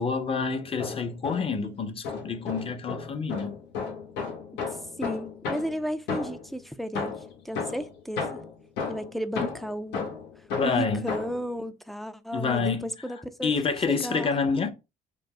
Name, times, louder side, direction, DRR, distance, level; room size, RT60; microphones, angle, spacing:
voice 1, 0.0-3.6 9.4-9.5 10.5-11.1 12.3-12.9 13.4-14.7, left 5 dB, 35° left, 0.8 m, -28 dB
sound 1, 0.6-1.7 2.0-6.6 7.0-11.5, left 5 dB, 85° left, 1.3 m, -34 dB
voice 2, 5.0-8.4 8.9-10.1 10.6-13.5 13.9-14.3, equal, ahead, 0.4 m, -34 dB
5.1 x 2.0 x 3.4 m
cardioid pair, 110°, 17 cm